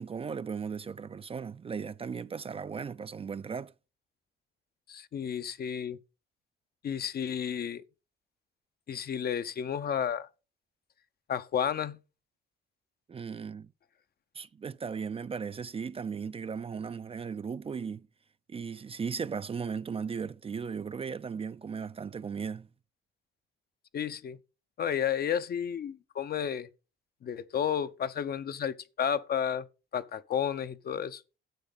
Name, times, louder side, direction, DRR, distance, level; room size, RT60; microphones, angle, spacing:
voice 1, 0.0-3.7 13.1-13.7 14.3-18.1 18.5-22.7, right 6 dB, 30° right, 0.4 m, -37 dB
voice 2, 4.9-6.0 6.8-7.8 8.9-10.3 11.3-12.0 23.9-24.4 24.8-26.7 27.2-29.6 29.9-31.2, left 8 dB, 50° left, 0.7 m, -32 dB
10.5 x 7.6 x 3.9 m
cardioid pair, 90°, 20 cm